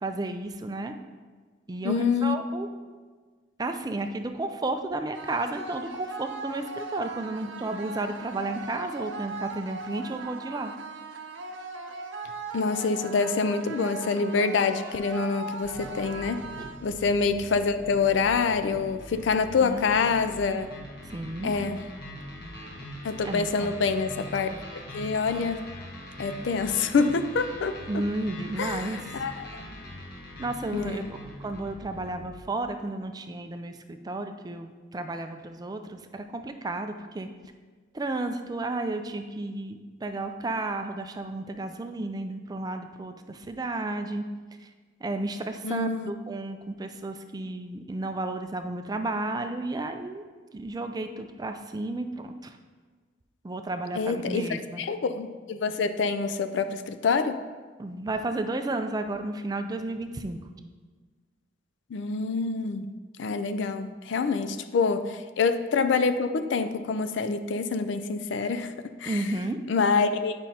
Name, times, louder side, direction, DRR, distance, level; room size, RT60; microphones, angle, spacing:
voice 1, 0.0-0.9 1.7-2.7 3.6-10.7 16.6-16.7 19.6-19.8 21.0-21.5 23.2-23.7 27.9-29.2 30.4-31.0 31.4-37.3 37.9-44.2 44.6-44.7 45.0-50.2 50.5-52.6 53.4-54.8 57.8-60.4 69.0-69.6, right 2 dB, 20° right, 7 dB, 0.3 m, -32 dB
voice 2, 1.8-2.4 12.5-16.4 16.8-20.7 21.4-21.8 23.0-24.5 24.9-25.6 26.2-28.0 28.6-29.6 30.7-31.1 45.6-46.1 54.0-57.4 61.9-62.9 63.2-68.7 69.0-69.2 69.7-70.4, left 4 dB, 70° left, 9 dB, 0.4 m, -26 dB
sound 1, 5.1-17.1, right 2 dB, 80° right, 0.6 m, -39 dB
sound 2, 15.6-32.4, left 1 dB, 55° left, 1.1 m, -42 dB
9.2 x 5.2 x 2.8 m, 1.4 s
head